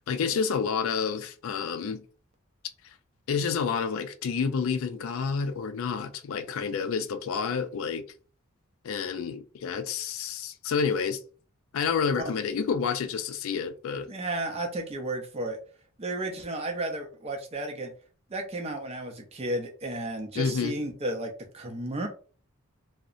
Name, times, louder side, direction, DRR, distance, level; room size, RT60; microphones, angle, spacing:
voice 1, 0.0-2.0 3.3-8.0 8.8-11.2 11.7-14.1 20.4-20.7, left 6 dB, 70° left, 0.3 m, -29 dB
voice 2, 14.1-15.6 16.0-17.9 18.3-22.1, right 1 dB, 30° right, 0.5 m, -33 dB
2.7 x 2.0 x 2.4 m
head